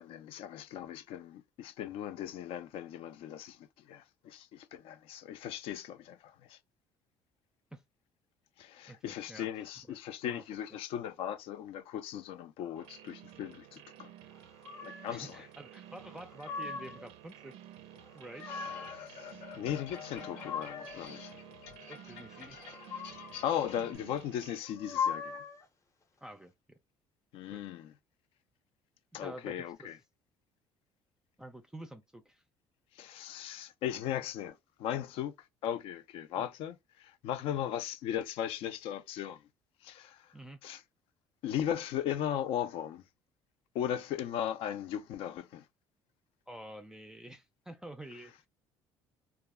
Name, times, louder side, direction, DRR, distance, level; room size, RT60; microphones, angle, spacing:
voice 1, 0.0-6.6 8.6-14.1 14.8-15.4 18.5-18.6 18.9-21.4 23.4-25.4 27.3-27.9 29.1-30.0 33.0-35.3 35.6-39.4 39.8-40.3 40.6-40.8 41.4-43.0 43.7-45.7, left 10 dB, 70° left, 0.4 m, -37 dB
voice 2, 8.9-9.5 9.9-10.0 10.2-10.4 10.7-10.8 15.1-17.6 18.1-18.5 21.9-22.6 26.2-26.5 27.5-27.6 29.2-29.9 31.4-32.4 36.4-36.5 40.3-40.6 46.5-48.3, right 1 dB, 5° right, 0.4 m, -48 dB
sound 1, 12.7-24.6, right 11 dB, 80° right, 0.4 m, -53 dB
sound 2, 14.6-15.2 16.1-17.1 18.0-19.0 20.0-21.1 22.6-23.5 24.6-25.7, left 6 dB, 30° left, 0.6 m, -39 dB
sound 3, 18.5-23.9, left 7 dB, 90° left, 0.9 m, -48 dB
2.3 x 2.0 x 3.5 m
cardioid pair, 100°, 10 cm